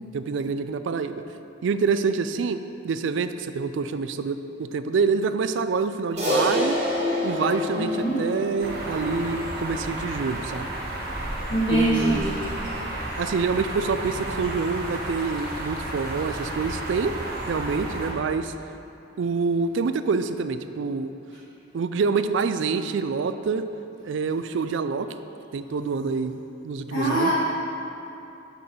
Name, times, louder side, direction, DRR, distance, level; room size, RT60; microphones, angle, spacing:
voice 1, 0.1-1.2 1.6-6.8 7.2-10.7 11.7-12.3 13.2-17.1 17.5-18.5 19.2-21.1 21.7-23.7 24.0-25.1 25.5-27.3, right 5 dB, 75° right, 11 dB, 0.4 m, -26 dB
Crash cymbal, 6.2-10.7, left 1 dB, 35° right, 1.9 m, -28 dB
voice 2, 7.8-8.1 11.5-12.3 26.9-27.3, right 1 dB, 70° left, -12 dB, 1.8 m, -23 dB
sound 1, 8.6-18.1, right 1 dB, 50° right, 1.4 m, -32 dB
6.7 x 6.1 x 5.4 m, 2.9 s
head